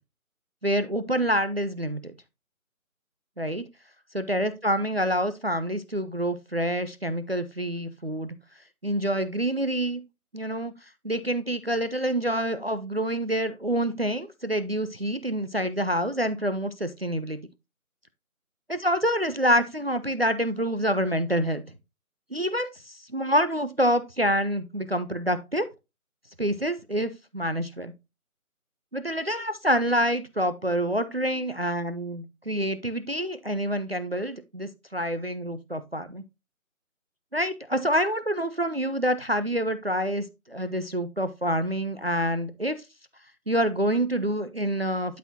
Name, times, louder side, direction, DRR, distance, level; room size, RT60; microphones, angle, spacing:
voice 1, 0.6-2.1 3.4-3.6 4.1-8.3 8.8-10.0 10.3-10.7 11.0-17.5 18.7-21.6 22.3-25.7 26.4-27.9 28.9-36.2 37.3-42.8 43.5-45.2, equal, 45° right, 0.4 m, -27 dB
12.0 x 4.1 x 2.8 m
figure-of-eight pair, 175°, 42 cm